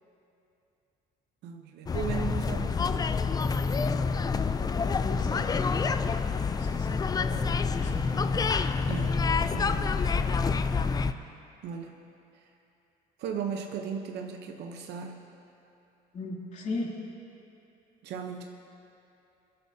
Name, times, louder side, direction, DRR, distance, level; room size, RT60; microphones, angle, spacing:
voice 1, 1.4-3.1 8.9-9.2 9.5-10.1 11.6-12.0 12.3-12.5 13.2-15.3 18.0-18.4, right 7 dB, 80° right, 3 dB, 0.9 m, -37 dB
sound 1, 1.9-11.1, left 5 dB, 25° left, 0.4 m, -27 dB
voice 2, 4.9-5.8 6.3-8.1 16.1-17.0, left 2 dB, 45° left, -3 dB, 2.6 m, -38 dB
24.5 x 10.5 x 2.8 m, 2.8 s
cardioid pair, 110°, 17 cm